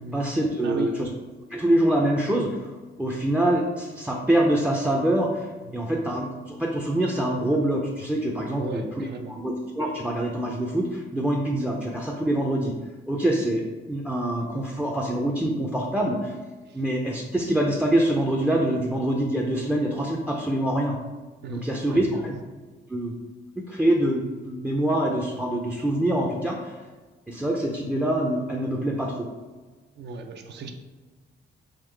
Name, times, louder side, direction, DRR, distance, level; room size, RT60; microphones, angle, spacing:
voice 1, 0.1-1.1 1.5-2.7 3.0-12.8 13.1-13.6 13.9-16.4 16.7-21.0 21.5-22.4 22.9-23.1 23.7-26.8 27.3-29.3, right 1 dB, 5° right, 0 dB, 0.4 m, -25 dB
voice 2, 8.6-9.3 16.7-16.8 21.4-22.3 29.9-30.7, right 4 dB, 60° right, 5 dB, 0.5 m, -36 dB
3.6 x 3.0 x 3.3 m, 1.3 s
cardioid pair, 90°, 20 cm